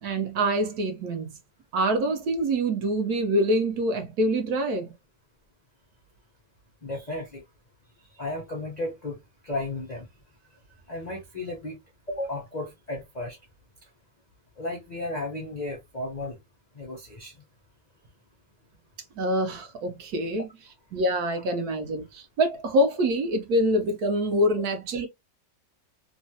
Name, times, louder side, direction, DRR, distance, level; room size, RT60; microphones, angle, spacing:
voice 1, 0.0-1.3 1.7-4.9 19.2-20.5 20.9-25.1, right 1 dB, 65° right, 1.1 m, -25 dB
voice 2, 6.8-7.4 8.1-9.2 9.4-10.1 10.9-11.8 12.1-13.4 14.6-16.4 16.7-17.3 21.3-21.4, left 2 dB, 85° left, 0.3 m, -34 dB
3.1 x 2.3 x 2.6 m
omnidirectional pair, 2.0 m